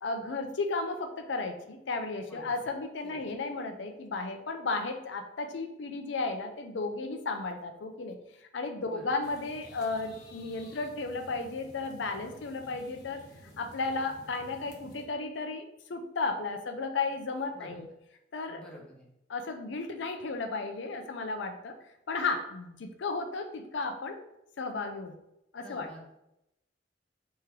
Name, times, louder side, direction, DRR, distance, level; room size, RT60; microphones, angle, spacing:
voice 1, 0.0-8.2 8.5-13.2 13.6-17.9 18.3-18.6 19.3-21.7 22.1-24.2 24.6-25.2 25.5-25.9, left 3 dB, 85° left, 5 dB, 0.5 m, -34 dB
sound 1, 9.2-15.0, left 1 dB, 55° left, 1.0 m, -53 dB
voice 2, 18.5-19.1 25.6-26.0, left 1 dB, 5° left, -2 dB, 0.9 m, -48 dB
3.5 x 3.2 x 4.5 m, 0.84 s
head